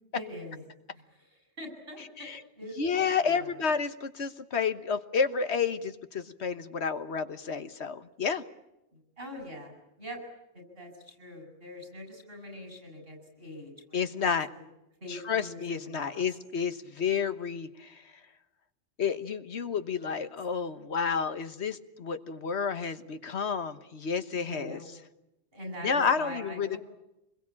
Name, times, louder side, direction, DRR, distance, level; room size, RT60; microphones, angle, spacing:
voice 1, 0.1-0.6 0.9-2.3 2.6-3.6 8.9-9.7 10.0-10.2 10.5-14.0 15.0-16.2 20.2-20.3 24.3-24.9 25.5-26.8, equal, 60° right, 4 dB, 7.6 m, -44 dB
voice 2, 2.8-8.4 13.9-14.5 15.1-18.0 19.0-24.8 25.8-26.8, left 6 dB, 75° left, 11 dB, 1.5 m, -30 dB
26.5 x 21.5 x 8.6 m, 0.90 s
omnidirectional pair, 1.1 m